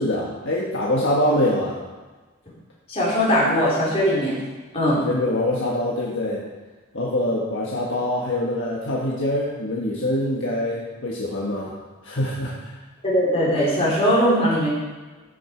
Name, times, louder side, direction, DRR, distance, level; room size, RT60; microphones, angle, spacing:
voice 1, 0.0-1.8 5.0-6.4 6.9-11.7 12.0-12.7, left 1 dB, 60° left, -4 dB, 1.5 m, -24 dB
voice 2, 2.9-4.4 4.7-5.0 13.0-14.7, equal, 30° left, -6 dB, 3.7 m, -20 dB
14.0 x 6.8 x 4.6 m, 1.3 s
head